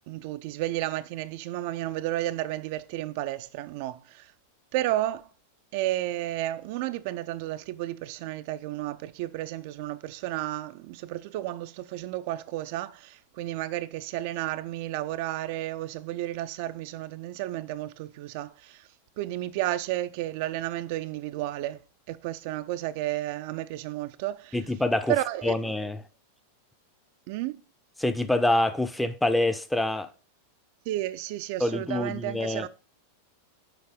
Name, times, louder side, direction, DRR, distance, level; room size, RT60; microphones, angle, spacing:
voice 1, 0.1-4.3 4.7-5.3 5.7-18.9 19.2-21.8 22.1-24.6 25.1-25.6 27.3-27.6 30.9-32.7, right 15 dB, 50° right, 0.3 m, -32 dB
voice 2, 24.5-25.1 25.4-26.0 28.0-30.1 31.6-32.7, left 1 dB, 5° left, 0.5 m, -26 dB
6.8 x 5.3 x 3.7 m
figure-of-eight pair, 90°, 0 cm